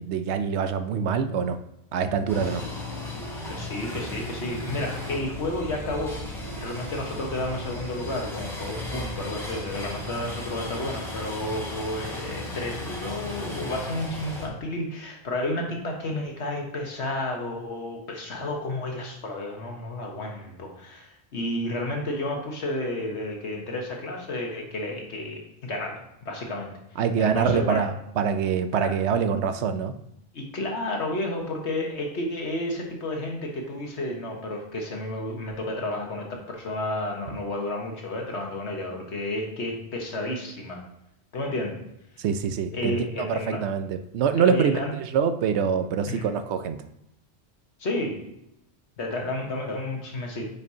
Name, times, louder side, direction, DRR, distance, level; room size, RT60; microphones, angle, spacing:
voice 1, 0.0-1.6 1.9-2.6 27.0-29.9 42.2-46.8, right 7 dB, 85° right, 9 dB, 0.9 m, -25 dB
sound 1, 2.3-14.5, left 1 dB, ahead, 2.7 m, -35 dB
voice 2, 3.5-6.1 6.5-26.0 26.2-26.8 27.2-27.9 28.8-28.9 30.3-40.8 41.3-41.7 42.7-43.6 44.3-44.9 46.1-46.2 47.8-48.2 49.0-50.4, left 1 dB, 80° left, 1 dB, 1.6 m, -31 dB
9.3 x 5.2 x 2.8 m, 0.82 s
omnidirectional pair, 1.1 m